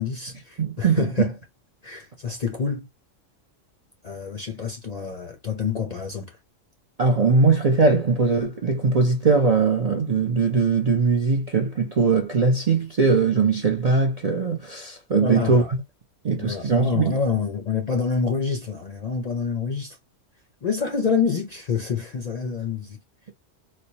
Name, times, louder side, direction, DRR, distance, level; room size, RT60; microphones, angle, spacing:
voice 1, 0.0-1.3 1.8-2.9 4.0-6.4 15.1-15.7 16.4-20.0 20.6-23.0, left 5 dB, 50° left, 0.5 m, -27 dB
voice 2, 0.6-1.3 7.0-15.8 16.2-17.2, right 4 dB, 50° right, 0.4 m, -20 dB
4.2 x 2.1 x 2.7 m
omnidirectional pair, 1.3 m